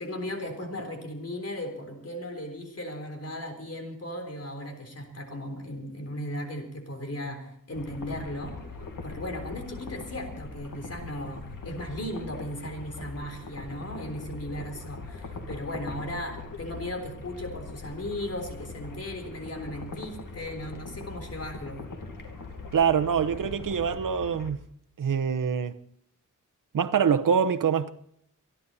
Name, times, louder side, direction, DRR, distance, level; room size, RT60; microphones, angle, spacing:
voice 1, 0.0-8.6 9.0-21.8, left 1 dB, 50° left, 3.7 m, -36 dB
sound 1, 7.7-24.5, left 3 dB, 80° left, 2.3 m, -41 dB
voice 2, 22.7-24.6 25.0-25.8 26.7-27.9, right 7 dB, 85° right, 0.9 m, -24 dB
25.0 x 11.5 x 4.2 m
wide cardioid pair, 125°, 32 cm